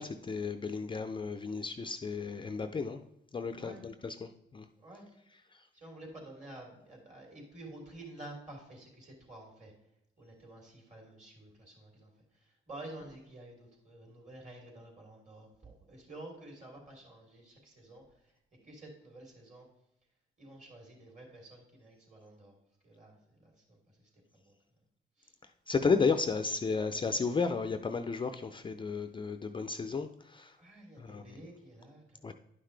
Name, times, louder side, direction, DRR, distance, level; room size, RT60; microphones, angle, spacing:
voice 1, 0.0-3.0 3.3-4.6 25.7-30.5 31.0-31.2 32.2-32.3, left 4 dB, 25° left, 8 dB, 0.5 m, -33 dB
voice 2, 3.5-3.9 4.8-5.2 5.7-9.7 10.2-18.3 18.6-19.7 20.4-22.6 22.8-24.6 25.2-25.3 30.6-32.3, right 1 dB, 35° right, 0 dB, 3.6 m, -51 dB
11.0 x 5.8 x 3.3 m, 0.84 s
cardioid pair, 90°, 20 cm